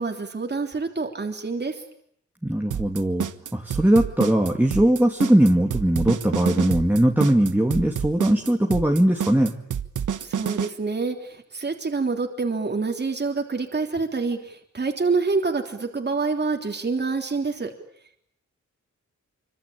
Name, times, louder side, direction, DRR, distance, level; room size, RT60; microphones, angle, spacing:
voice 1, 0.0-1.8 10.2-17.7, right 4 dB, 35° right, 3 dB, 3.4 m, -27 dB
voice 2, 2.4-9.5, right 1 dB, 5° right, 2 dB, 2.7 m, -20 dB
sound 1, 2.7-10.7, right 8 dB, 85° right, 1.4 m, -28 dB
26.0 x 25.5 x 8.8 m, 0.69 s
wide cardioid pair, 105°, 30 cm